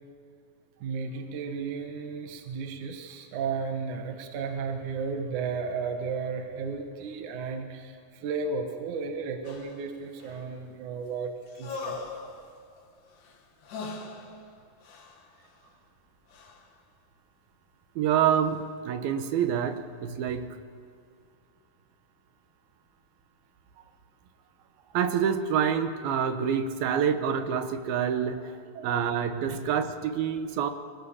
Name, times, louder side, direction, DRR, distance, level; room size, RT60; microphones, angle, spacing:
voice 1, 0.8-12.0 28.8-28.9 29.5-29.6, right 5 dB, 65° right, 5 dB, 2.7 m, -34 dB
sound 1, 9.4-10.9 11.5-15.7 16.3-16.8 18.4-18.7 19.6-19.8, left 4 dB, 65° left, 3.4 m, -42 dB
voice 2, 18.0-20.6 24.9-30.7, right 8 dB, 85° right, 8 dB, 3.1 m, -27 dB
25.0 x 18.5 x 7.2 m, 2.2 s
omnidirectional pair, 4.1 m